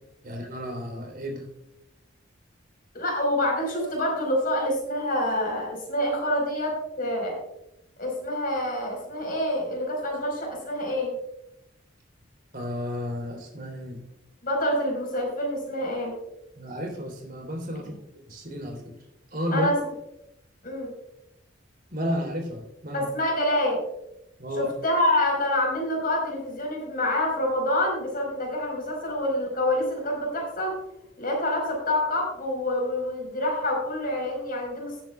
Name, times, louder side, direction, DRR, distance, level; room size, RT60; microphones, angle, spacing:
voice 1, 0.2-1.4 12.5-14.0 16.6-17.9 18.3-18.8 19.3-19.7 21.9-23.1 24.4-24.7, equal, 50° right, 1 dB, 3.5 m, -32 dB
voice 2, 2.9-7.4 8.0-11.1 14.4-16.1 17.8-18.0 19.5-19.9 20.6-20.9 22.9-23.8 24.5-30.8 31.2-35.0, left 1 dB, 50° left, 0 dB, 4.8 m, -27 dB
18.0 x 8.8 x 2.4 m, 0.84 s
head